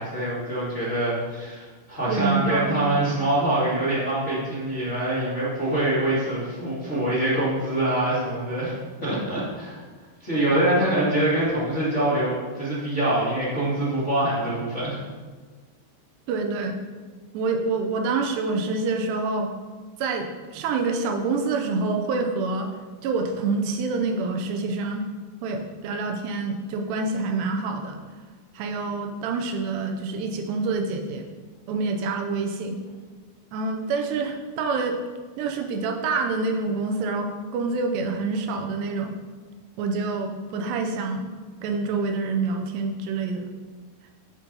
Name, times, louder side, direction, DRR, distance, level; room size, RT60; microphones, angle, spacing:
voice 1, 0.0-8.7 9.0-9.8 10.2-15.0, right 1 dB, 25° left, -9 dB, 1.8 m, -24 dB
voice 2, 2.1-2.9 16.3-16.8 17.3-19.5 20.0-22.7 23.0-25.0 25.4-28.0 28.5-31.2 31.7-32.8 33.5-35.1 35.4-39.1 39.8-41.3 41.6-43.5, right 3 dB, 80° right, 3 dB, 2.8 m, -27 dB
11.0 x 4.4 x 5.3 m, 1.4 s
omnidirectional pair, 4.9 m